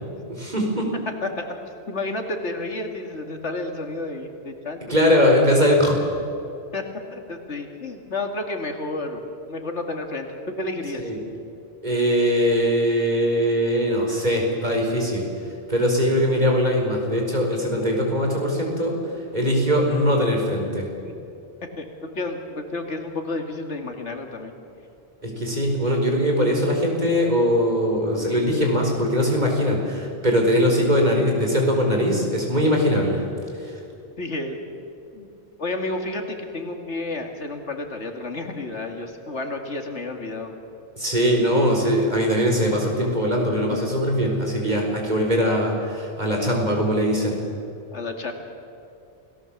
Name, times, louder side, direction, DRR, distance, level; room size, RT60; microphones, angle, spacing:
voice 1, 0.1-0.9 4.9-6.0 11.0-11.2 11.8-15.2 15.7-19.0 19.3-20.9 25.2-33.2 41.0-47.4, equal, 40° right, 1 dB, 4.7 m, -21 dB
voice 2, 1.9-5.0 6.7-6.8 7.1-9.2 9.5-10.3 10.6-11.0 21.0-21.2 21.8-24.5 34.2-34.6 35.1-35.3 35.6-40.5 43.7-43.8 47.9-48.3, left 2 dB, 85° left, 4 dB, 2.7 m, -31 dB
28.5 x 18.5 x 7.4 m, 2.6 s
omnidirectional pair, 1.2 m